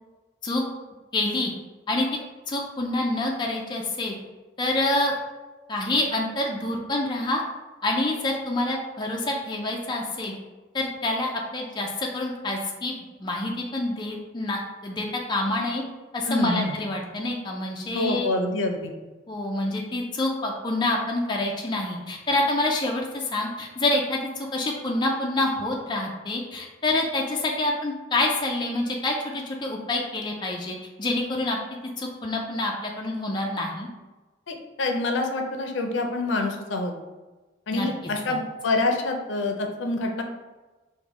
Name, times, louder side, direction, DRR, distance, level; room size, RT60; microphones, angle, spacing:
voice 1, 1.1-1.5 1.9-2.2 2.5-4.1 4.6-5.1 5.7-7.4 7.8-10.3 10.7-15.8 16.1-18.3 19.3-31.6 32.0-33.9 37.7-37.9, left 2 dB, 25° left, 0 dB, 0.4 m, -27 dB
voice 2, 16.3-16.8 17.9-18.9 34.5-36.9 37.7-40.2, left 2 dB, 75° left, 4 dB, 0.5 m, -26 dB
5.1 x 2.1 x 3.0 m, 1.2 s
head